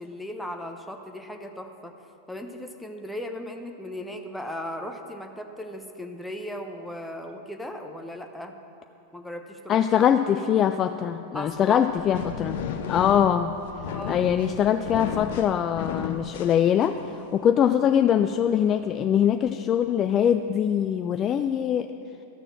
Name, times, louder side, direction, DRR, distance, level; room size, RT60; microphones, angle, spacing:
voice 1, 0.0-1.9 2.3-8.5 9.1-10.1 11.3-11.9 12.7-12.8 13.9-14.3, left 1 dB, 5° left, 4 dB, 0.9 m, -37 dB
voice 2, 9.7-12.6 12.9-13.5 14.1-21.9, left 9 dB, 30° left, 8 dB, 0.3 m, -23 dB
sound 1, 11.5-17.2, left 7 dB, 55° left, 0.7 m, -34 dB
12.5 x 6.7 x 7.3 m, 2.9 s
figure-of-eight pair, 90°, 0 cm